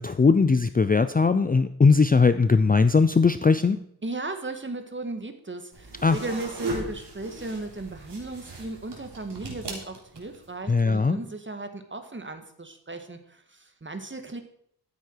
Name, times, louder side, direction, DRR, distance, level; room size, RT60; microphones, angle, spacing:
voice 1, 0.0-3.8 6.0-6.2 10.7-11.2, left 4 dB, 20° left, 12 dB, 0.5 m, -20 dB
voice 2, 4.0-14.4, right 2 dB, 25° right, 7 dB, 1.7 m, -36 dB
sound 1, 5.7-10.5, right 2 dB, 70° right, 3.4 m, -38 dB
13.5 x 8.3 x 4.6 m, 0.71 s
cardioid pair, 65°, 43 cm